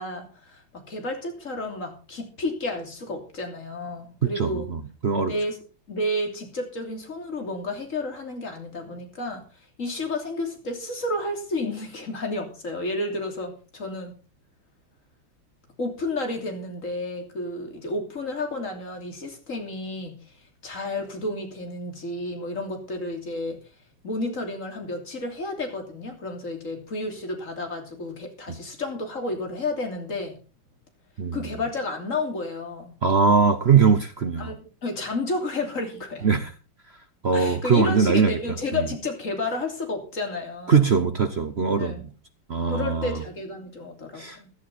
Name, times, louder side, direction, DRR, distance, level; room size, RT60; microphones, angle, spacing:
voice 1, 0.0-4.7 5.2-5.6 5.9-9.4 9.8-14.2 15.8-20.2 20.6-23.6 24.0-30.4 31.3-33.0 34.4-36.3 37.3-40.8 41.8-42.0 42.7-44.5, left 2 dB, 35° left, 3.4 m, -31 dB
voice 2, 4.4-5.3 31.2-31.4 33.0-34.5 36.2-36.5 37.2-38.4 38.7-38.8 40.7-42.0 42.5-43.2 44.2-44.4, right 5 dB, 55° right, 0.7 m, -21 dB
16.0 x 11.5 x 4.2 m
omnidirectional pair, 2.3 m